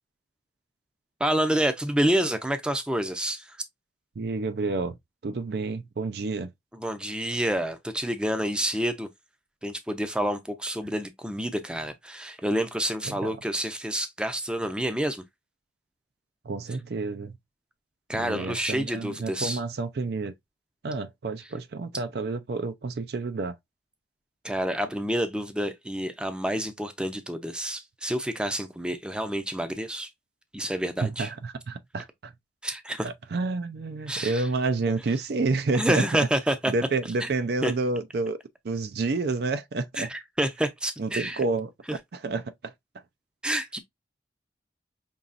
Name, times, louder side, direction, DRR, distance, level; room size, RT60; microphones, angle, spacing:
voice 1, 1.2-3.6 6.7-9.1 9.6-15.2 18.1-19.6 24.4-30.1 30.5-31.3 32.6-33.1 34.1-34.5 35.7-36.7 37.2-37.3 37.6-37.7 40.0-41.4 43.4-43.8, right 1 dB, 5° right, 0.5 m, -28 dB
voice 2, 4.2-5.0 5.2-6.5 13.0-13.3 16.4-17.4 18.1-20.3 20.8-23.6 31.0-32.3 33.0-36.1 36.7-38.4 38.6-40.1 41.0-41.7 42.1-42.7, right 3 dB, 60° right, 0.4 m, -29 dB
5.4 x 2.9 x 2.5 m
head